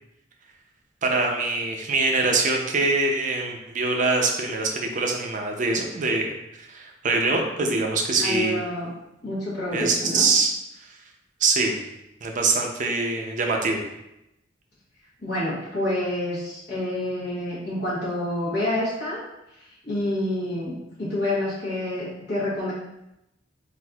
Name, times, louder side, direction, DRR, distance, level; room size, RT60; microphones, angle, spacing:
voice 1, 1.0-6.3 6.7-8.6 9.7-10.5 11.4-11.8 12.2-13.8, right 3 dB, 45° right, 2 dB, 0.5 m, -23 dB
voice 2, 8.2-8.9 9.2-10.2 15.2-19.2 19.8-20.7 21.0-22.7, left 1 dB, 65° left, -9 dB, 1.1 m, -28 dB
4.2 x 2.5 x 2.3 m, 0.88 s
head